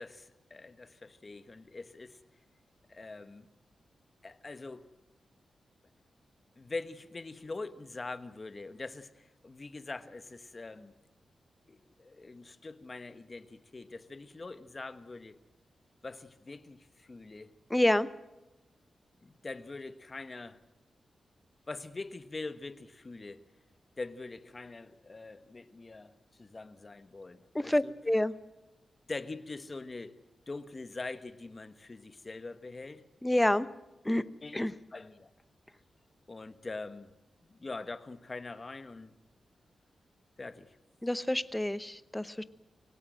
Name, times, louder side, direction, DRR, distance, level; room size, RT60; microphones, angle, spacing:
voice 1, 0.0-2.2 2.9-3.5 4.2-4.9 6.6-10.9 11.7-15.4 16.0-17.5 19.2-20.6 21.7-23.4 24.0-27.9 29.1-30.2 30.5-33.0 34.4-35.3 36.3-37.1 37.5-39.2 40.4-40.8, left 3 dB, 30° left, 1.3 m, -43 dB
voice 2, 17.7-18.1 27.5-28.3 33.2-33.7 34.0-34.2 34.5-34.7 41.0-42.4, left 1 dB, 10° left, 0.8 m, -28 dB
25.0 x 18.0 x 7.7 m
wide cardioid pair, 135°, 0 cm